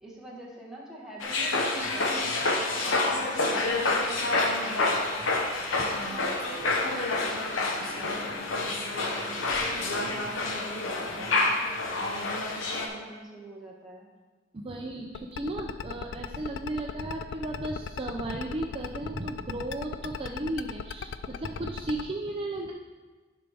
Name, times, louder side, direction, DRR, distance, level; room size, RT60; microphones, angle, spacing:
voice 1, 0.0-5.1 5.7-11.8 12.1-12.2 12.7-14.1, right 1 dB, 5° right, -5 dB, 1.5 m, -45 dB
sound 1, 1.2-12.9, left 2 dB, 90° left, 1.0 m, -28 dB
voice 2, 14.5-22.7, right 1 dB, 30° right, 0 dB, 0.5 m, -35 dB
sound 2, 15.1-22.0, left 7 dB, 65° left, 0.3 m, -36 dB
10.0 x 5.2 x 3.4 m, 1.3 s
head